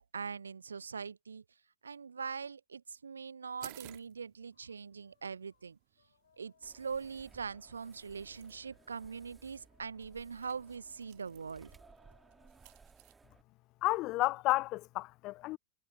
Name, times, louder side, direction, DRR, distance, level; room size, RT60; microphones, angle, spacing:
voice 1, 0.0-1.4 1.8-5.8 6.4-11.7, right 5 dB, 75° right, 0.3 m, -42 dB
sound 1, 3.6-13.1, right 35 dB, 45° right, 1.7 m, -59 dB
sound 2, 4.5-12.8, left 8 dB, 70° left, 7.5 m, -72 dB
sound 3, 6.6-13.4, right 4 dB, 15° right, 1.9 m, -61 dB
voice 2, 13.8-15.6, left 19 dB, 40° left, 0.3 m, -31 dB
figure-of-eight pair, 90°, 0 cm